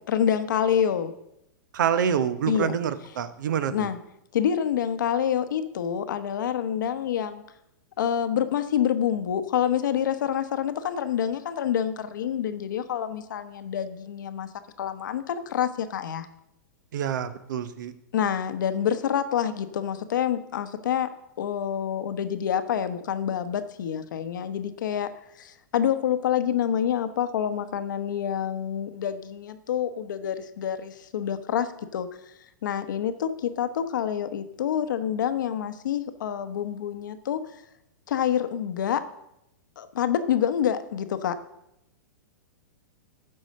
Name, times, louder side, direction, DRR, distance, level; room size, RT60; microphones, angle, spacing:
voice 1, 0.1-1.1 2.5-2.8 3.7-4.0 4.3-7.4 8.0-14.5 14.8-16.3 18.1-21.1 21.4-25.1 25.4-32.1 32.6-37.4 38.1-39.1 39.8-41.4, left 9 dB, 75° left, 10 dB, 0.9 m, -27 dB
voice 2, 1.7-3.9 16.9-17.9, right 8 dB, 70° right, 12 dB, 0.9 m, -27 dB
12.0 x 4.8 x 6.5 m, 0.82 s
hypercardioid pair, 125°, 10 cm